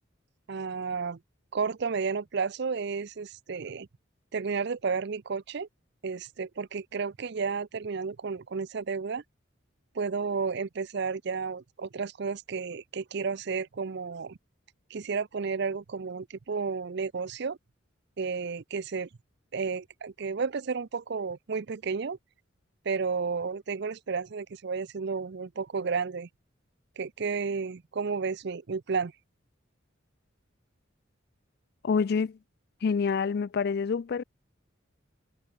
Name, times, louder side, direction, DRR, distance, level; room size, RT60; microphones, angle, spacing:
voice 1, 0.5-1.2 1.5-3.9 4.3-5.7 6.0-9.2 9.9-14.4 14.9-17.6 18.2-19.1 19.5-22.2 22.8-26.3 27.0-29.1, right 5 dB, 55° right, 0.5 m, -32 dB
voice 2, 31.8-32.4 32.8-34.2, left 5 dB, 50° left, 0.4 m, -27 dB
head